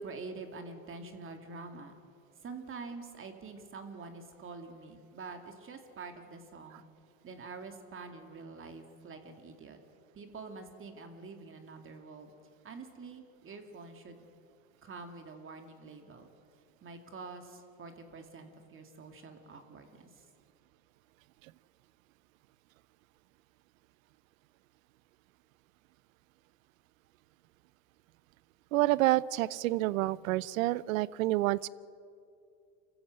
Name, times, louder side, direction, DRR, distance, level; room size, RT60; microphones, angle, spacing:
voice 1, 0.0-2.0 2.4-6.8 7.2-9.8 10.1-12.3 12.6-14.2 14.8-16.3 16.8-20.1, right 4 dB, 30° right, 5 dB, 2.4 m, -46 dB
voice 2, 28.7-31.7, right 17 dB, 80° right, 21 dB, 0.7 m, -28 dB
25.0 x 14.5 x 7.7 m, 2.4 s
supercardioid pair, 100°, 40 cm